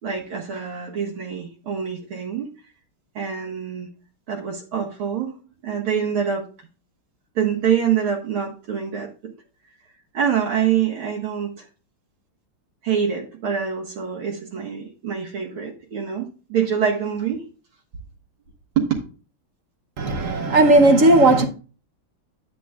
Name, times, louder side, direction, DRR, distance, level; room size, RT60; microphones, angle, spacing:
voice 1, 0.0-2.5 3.2-3.9 4.3-5.3 5.6-6.5 7.4-9.1 10.1-11.6 12.8-17.4 18.8-18.9 20.6-20.9, right 8 dB, 75° right, 2.2 m, -25 dB
voice 2, 20.0-21.5, right 2 dB, 55° right, 0.9 m, -15 dB
10.0 x 8.7 x 2.3 m
omnidirectional pair, 2.3 m